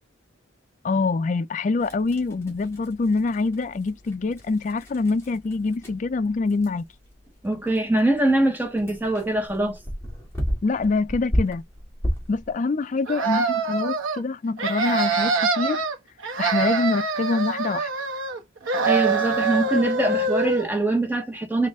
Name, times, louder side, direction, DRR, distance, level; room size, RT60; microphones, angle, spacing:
voice 1, 0.8-6.8 10.6-11.6 12.3-15.9 16.4-17.9, left 3 dB, 40° left, 0.3 m, -25 dB
sound 1, 1.8-12.5, equal, 15° left, 1.5 m, -34 dB
voice 2, 7.4-9.8 18.8-21.7, right 1 dB, 10° right, 0.9 m, -23 dB
sound 2, 13.1-14.2 14.6-15.9 16.2-18.4 18.7-20.7, right 4 dB, 85° right, 1.0 m, -24 dB
4.3 x 2.4 x 3.5 m
head